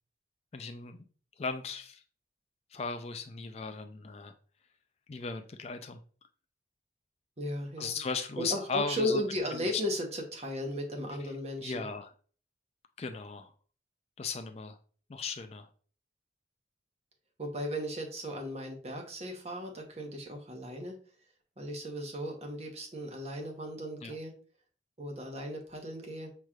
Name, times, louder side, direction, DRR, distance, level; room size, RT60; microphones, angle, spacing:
voice 1, 0.5-1.0 1.4-2.0 2.7-4.3 5.1-6.0 7.8-9.2 9.5-9.8 11.2-11.3 11.6-12.1 13.0-13.5 14.2-14.8 15.1-15.7 24.0-24.2, left 4 dB, 35° left, 8 dB, 0.3 m, -37 dB
voice 2, 7.4-8.0 8.4-11.8 17.4-20.9 21.6-24.3 25.0-26.3, left 1 dB, 35° right, 2 dB, 0.9 m, -36 dB
5.8 x 3.2 x 2.4 m, 0.41 s
head